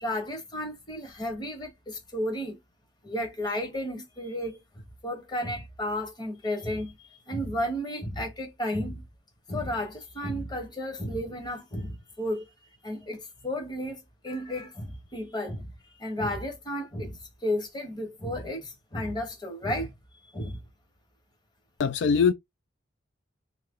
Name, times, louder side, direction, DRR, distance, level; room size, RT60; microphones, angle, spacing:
voice 1, 0.0-2.6 3.0-4.6 5.0-9.0 9.5-12.5 12.8-19.9 20.3-20.6, left 1 dB, 20° left, 0.9 m, -33 dB
voice 2, 21.8-22.3, left 6 dB, 70° left, 0.3 m, -22 dB
2.7 x 2.7 x 3.6 m
head